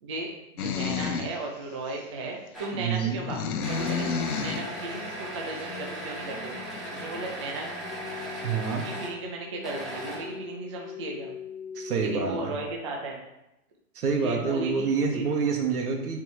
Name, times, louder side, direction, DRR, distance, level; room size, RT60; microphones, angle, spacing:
voice 1, 0.0-6.6 6.9-7.7 8.8-11.3 12.0-13.2 14.2-15.2, right 2 dB, 20° right, -1 dB, 0.5 m, -36 dB
sound 1, 0.6-1.4 1.9-2.0 3.0-4.7, left 6 dB, 70° left, 0.9 m, -30 dB
sound 2, 2.5-2.9 3.6-9.2 9.6-10.5, right 1 dB, ahead, 1.0 m, -38 dB
voice 2, 2.8-3.2 8.4-8.9 11.7-12.6 13.9-16.2, right 5 dB, 75° right, 1 dB, 1.9 m, -27 dB
sound 3, 3.8-12.7, left 5 dB, 45° left, 1.4 m, -43 dB
9.5 x 4.5 x 3.1 m, 0.89 s
hypercardioid pair, 170°, 45 cm